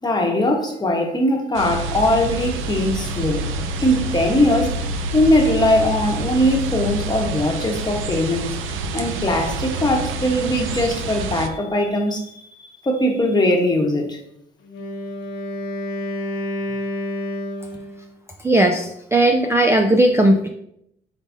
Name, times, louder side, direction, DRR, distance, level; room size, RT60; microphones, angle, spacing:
voice 1, 0.0-3.4 3.8-4.8 5.1-12.4 12.8-14.2, left 1 dB, 20° left, 1 dB, 1.0 m, -20 dB
sound 1, 1.5-11.5, right 2 dB, 85° right, 0.5 m, -27 dB
Wind instrument woodwind instrument, 14.6-18.1, left 1 dB, 90° left, 0.6 m, -29 dB
voice 2, 18.4-20.5, right 1 dB, 15° right, 5 dB, 0.3 m, -17 dB
4.9 x 3.8 x 2.6 m, 0.74 s
cardioid pair, 90°, 20 cm